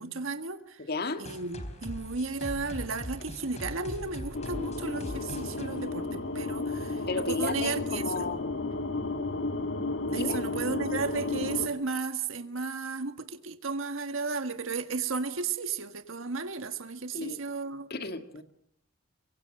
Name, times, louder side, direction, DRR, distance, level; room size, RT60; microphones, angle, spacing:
voice 1, 0.0-0.8 1.2-8.3 10.1-17.9, right 4 dB, 90° right, 1.6 m, -34 dB
voice 2, 0.9-1.2 7.1-8.4 10.1-10.4 17.1-17.4 17.9-18.4, left 3 dB, 55° left, 2.0 m, -33 dB
sound 1, 1.2-6.7, equal, 35° left, 3.6 m, -41 dB
sound 2, 4.3-11.7, left 2 dB, 70° left, 1.9 m, -33 dB
24.0 x 24.0 x 7.7 m
head